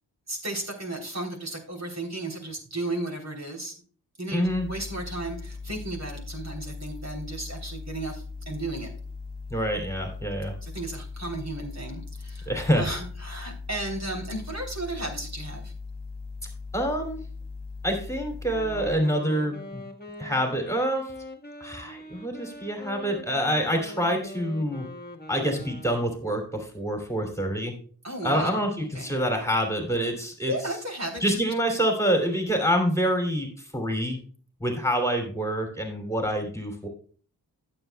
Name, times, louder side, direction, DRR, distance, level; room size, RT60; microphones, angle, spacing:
voice 1, 0.3-3.7 4.2-8.9 10.6-15.7 28.0-28.6 28.9-29.1 30.5-31.5, right 1 dB, 45° right, 2 dB, 3.5 m, -34 dB
voice 2, 4.3-4.7 9.5-10.5 12.5-12.8 16.7-17.2 17.8-19.8 20.2-21.0 21.6-24.9 25.3-27.7 28.2-30.5 31.2-33.5 33.7-34.2 34.6-36.9, equal, 5° left, 2 dB, 2.9 m, -26 dB
sound 1, 4.5-19.0, left 4 dB, 90° left, 1.1 m, -39 dB
Wind instrument woodwind instrument, 18.4-26.3, left 1 dB, 25° left, 1.6 m, -43 dB
15.0 x 7.5 x 2.3 m, 0.43 s
cardioid pair, 45°, 39 cm